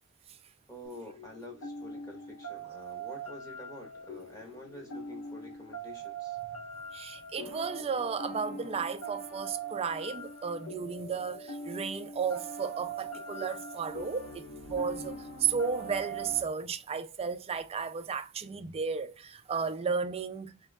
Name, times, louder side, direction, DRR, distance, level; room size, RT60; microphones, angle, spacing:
voice 1, 0.7-6.4, left 1 dB, 15° left, 1.4 m, -48 dB
sound 1, 0.8-16.4, right 3 dB, 80° left, 1.2 m, -42 dB
voice 2, 6.9-20.6, right 6 dB, 25° right, 0.3 m, -34 dB
4.2 x 3.1 x 2.3 m
head